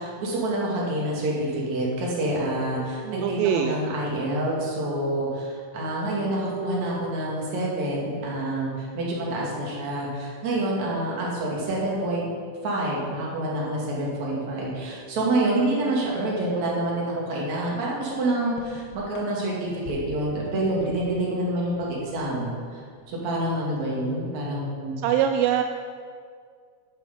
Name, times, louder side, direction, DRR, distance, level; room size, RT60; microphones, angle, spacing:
voice 1, 0.0-12.3 12.6-25.0, right 1 dB, 50° right, -4 dB, 3.1 m, -27 dB
voice 2, 3.0-3.8 25.0-25.6, right 10 dB, 80° right, 5 dB, 2.1 m, -23 dB
sound 1, 18.1-18.2 18.4-21.3 21.6-22.7 22.9-23.2, left 4 dB, 75° left, 3.0 m, -43 dB
11.0 x 8.4 x 5.2 m, 2.1 s
omnidirectional pair, 4.5 m